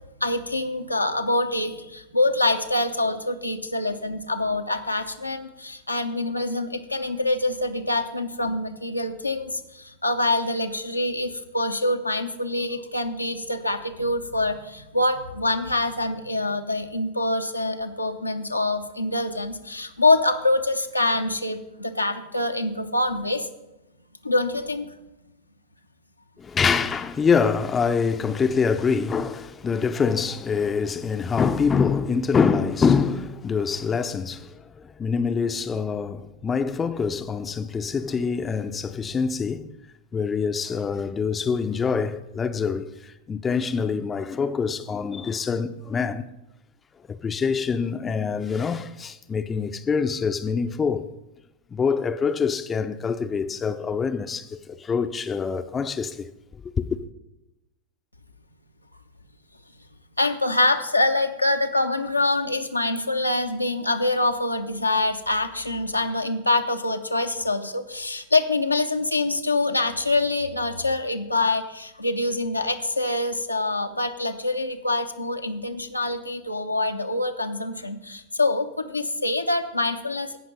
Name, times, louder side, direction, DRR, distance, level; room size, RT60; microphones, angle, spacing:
voice 1, 0.2-23.5 24.2-24.9 60.2-80.4, left 2 dB, 85° left, 0.8 m, -25 dB
voice 2, 26.4-39.7 40.1-46.2 47.1-51.1 51.7-56.9, left 5 dB, 20° left, 0.6 m, -25 dB
16.5 x 5.9 x 5.3 m
figure-of-eight pair, 90°, 0 cm